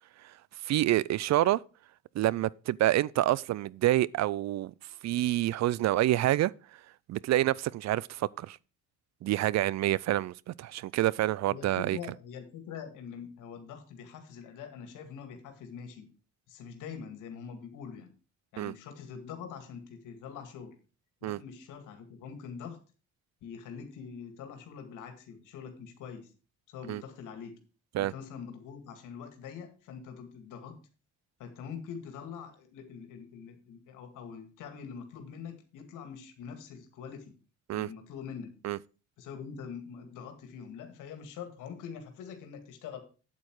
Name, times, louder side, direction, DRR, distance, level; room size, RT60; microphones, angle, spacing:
voice 1, 0.6-1.6 2.2-4.7 5.0-6.5 7.1-8.6 9.2-12.0 18.6-18.7 21.2-21.4 26.9-27.0 27.9-28.1 37.7-37.9 38.6-38.8, right 14 dB, 60° right, 0.4 m, -27 dB
voice 2, 11.5-16.1 16.5-18.1 18.5-20.8 21.2-22.8 23.4-26.3 26.7-27.5 27.9-30.8 31.4-37.3 37.7-38.5 39.2-43.0, left 7 dB, 90° left, 2.1 m, -44 dB
8.6 x 8.6 x 4.7 m
cardioid pair, 90°, 30 cm